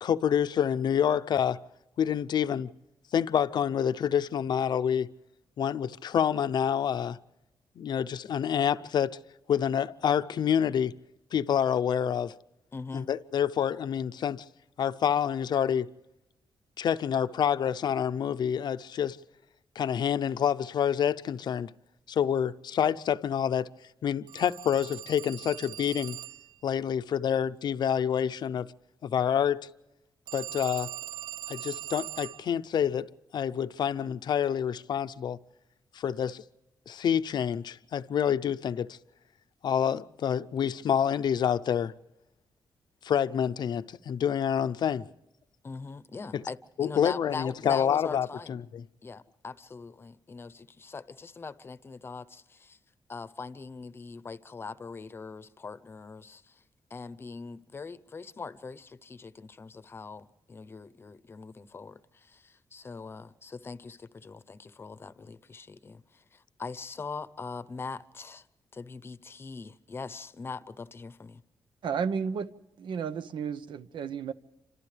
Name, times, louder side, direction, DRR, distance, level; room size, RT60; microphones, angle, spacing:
voice 1, 0.0-1.6 2.0-2.7 3.1-5.1 5.6-7.2 7.8-9.2 9.5-11.0 11.3-12.3 12.9-14.4 14.8-15.9 16.8-19.2 19.8-21.7 22.1-23.7 24.0-26.2 26.6-28.7 29.0-29.7 30.3-30.9 31.5-35.4 35.9-36.4 36.9-39.0 39.6-41.9 43.0-45.0 46.3-46.4 46.8-48.8, left 8 dB, 65° left, 0.6 m, -27 dB
voice 2, 12.7-13.1 45.6-48.6 49.0-52.8 53.1-56.6 56.9-68.4 68.7-71.4, left 4 dB, 30° left, 0.8 m, -42 dB
Telephone, 24.3-26.6 30.3-32.5, right 14 dB, 70° right, 0.7 m, -41 dB
voice 3, 71.8-72.5 72.8-74.3, right 6 dB, 85° right, 1.0 m, -32 dB
29.0 x 26.0 x 3.4 m
wide cardioid pair, 155°, 8 cm